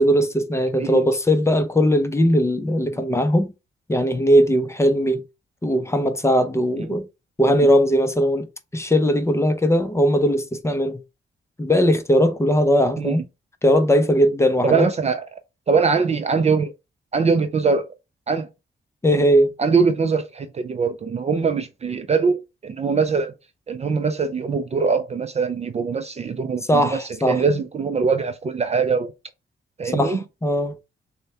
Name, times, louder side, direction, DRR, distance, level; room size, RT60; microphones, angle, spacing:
voice 1, 0.0-3.5 3.9-5.2 5.6-7.0 7.4-8.5 8.7-11.0 11.6-13.2 13.6-14.9 19.0-19.5 26.7-27.4 29.8-30.7, equal, 15° left, 0.6 m, -19 dB
voice 2, 14.6-15.3 15.7-16.7 17.1-17.9 18.3-18.5 19.1-19.2 19.6-23.3 23.7-29.1 29.8-30.2, right 5 dB, 35° right, 0.4 m, -22 dB
6.5 x 2.2 x 2.8 m
wide cardioid pair, 130°, 20 cm